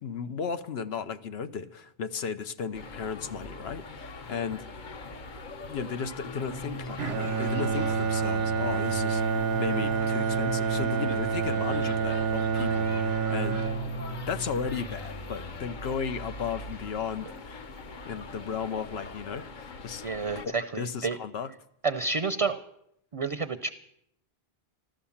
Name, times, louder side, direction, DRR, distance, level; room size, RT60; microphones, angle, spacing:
voice 1, 0.0-4.7 5.7-13.7 14.3-17.7 18.1-20.0 20.4-21.5, left 6 dB, 80° left, 10 dB, 1.1 m, -35 dB
sound 1, 2.7-20.5, left 3 dB, 50° left, 1.0 m, -42 dB
sound 2, 5.7-15.7, left 4 dB, 30° left, 0.5 m, -42 dB
Bowed string instrument, 7.0-15.2, right 6 dB, 80° right, 1.0 m, -28 dB
voice 2, 20.0-21.2 21.8-22.6 23.1-23.7, right 4 dB, 40° right, 10 dB, 0.6 m, -29 dB
14.0 x 12.5 x 7.2 m, 0.77 s
omnidirectional pair, 1.0 m